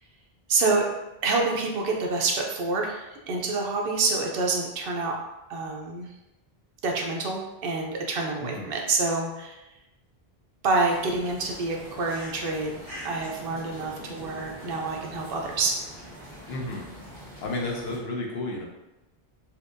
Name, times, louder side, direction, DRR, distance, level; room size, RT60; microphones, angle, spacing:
voice 1, 0.5-0.9 1.2-5.1 5.5-6.1 6.8-9.6 10.6-15.8, right 3 dB, 70° right, 0 dB, 0.8 m, -27 dB
sound 1, 10.9-18.0, equal, 40° right, 1.3 m, -43 dB
voice 2, 16.5-16.8 17.4-18.6, left 2 dB, 80° left, -1 dB, 0.9 m, -32 dB
4.3 x 2.3 x 2.5 m, 0.97 s
omnidirectional pair, 1.0 m